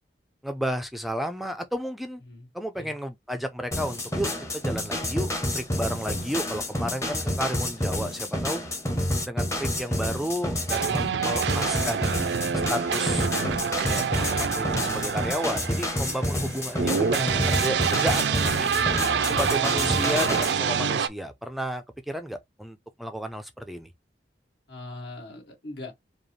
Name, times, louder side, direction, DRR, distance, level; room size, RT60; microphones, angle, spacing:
voice 1, 0.4-2.2 2.5-8.6 9.2-12.2 12.7-13.3 13.8-18.7 19.2-23.9, equal, ahead, 0.4 m, -32 dB
sound 1, 3.7-20.5, left 1 dB, 15° left, 0.9 m, -29 dB
sound 2, 10.7-21.1, right 6 dB, 70° right, 0.4 m, -27 dB
voice 2, 19.0-20.6 24.7-25.9, left 2 dB, 70° left, 2.1 m, -41 dB
5.0 x 2.4 x 3.1 m
head